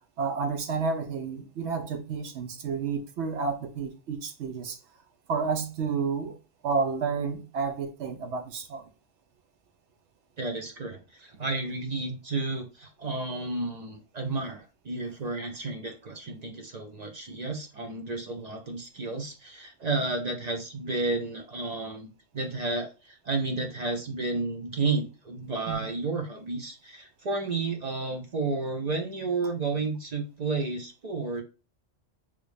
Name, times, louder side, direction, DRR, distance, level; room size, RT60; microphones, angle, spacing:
voice 1, 0.2-4.8 5.3-6.4 6.6-8.8 25.7-25.8, right 5 dB, 80° right, 0.9 m, -30 dB
voice 2, 10.4-31.4, right 3 dB, 50° right, 0.5 m, -32 dB
3.1 x 2.5 x 3.3 m
omnidirectional pair, 1.2 m